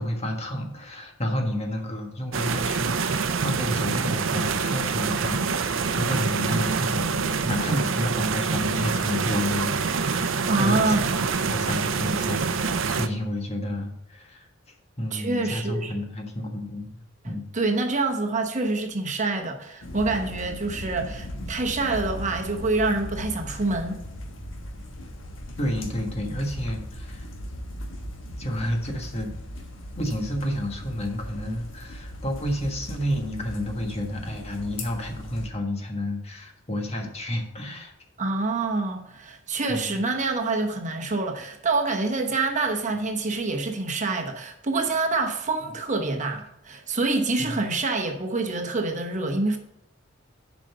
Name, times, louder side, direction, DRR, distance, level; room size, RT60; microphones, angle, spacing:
voice 1, 0.0-14.5 15.0-17.5 25.6-27.3 28.4-29.3 30.0-37.9 39.7-40.0 47.4-47.6, left 1 dB, 35° left, 1.4 m, -30 dB
sound 1, 2.3-13.1, right 5 dB, 80° right, 0.6 m, -26 dB
voice 2, 10.5-11.1 15.1-16.1 17.2-24.0 38.2-49.6, right 3 dB, 40° right, 1.1 m, -26 dB
sound 2, 19.8-35.5, left 1 dB, 75° left, 1.4 m, -38 dB
7.3 x 5.3 x 6.8 m
head